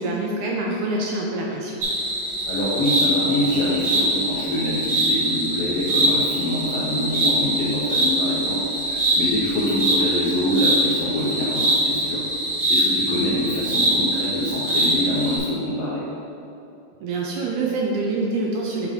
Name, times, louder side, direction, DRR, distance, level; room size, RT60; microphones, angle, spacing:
voice 1, 0.0-1.8 17.0-18.9, right 2 dB, 75° right, -2 dB, 1.8 m, -25 dB
sound 1, 1.8-15.4, right 1 dB, 50° right, 1.4 m, -23 dB
voice 2, 2.4-12.2 12.7-16.0 17.6-17.7, left 1 dB, 75° left, -7 dB, 1.4 m, -25 dB
7.7 x 4.7 x 3.5 m, 2.7 s
omnidirectional pair, 3.9 m